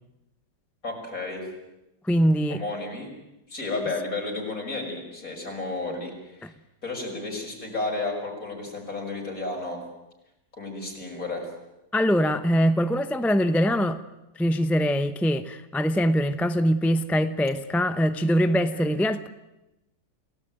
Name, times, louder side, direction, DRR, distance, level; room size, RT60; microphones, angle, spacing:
voice 1, 0.8-1.5 2.5-3.2 3.5-6.5 6.8-9.8 10.5-11.5 18.7-18.9, left 3 dB, 50° left, 6.2 m, -32 dB
voice 2, 2.0-2.6 6.4-6.5 11.9-14.0 14.4-19.3, equal, ahead, 0.4 m, -23 dB
28.5 x 17.5 x 9.2 m
omnidirectional pair, 1.9 m